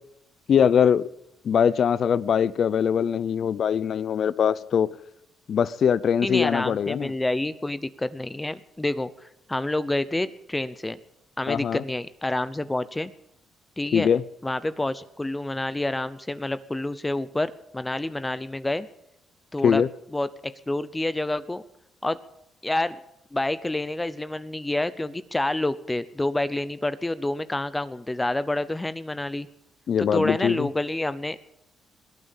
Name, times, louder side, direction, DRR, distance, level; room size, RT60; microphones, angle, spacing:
voice 1, 0.5-1.1 1.4-4.9 5.5-7.1 11.5-11.8 13.9-14.2 19.6-19.9 29.9-30.7, left 8 dB, 60° left, 0.6 m, -22 dB
voice 2, 6.2-11.0 11.4-13.1 13.8-14.1 14.4-18.9 19.5-19.8 20.1-21.6 22.0-22.2 22.6-23.0 23.3-29.5 30.0-31.4, left 1 dB, 15° left, 0.7 m, -28 dB
21.5 x 8.9 x 7.3 m
cardioid pair, 90°, 0 cm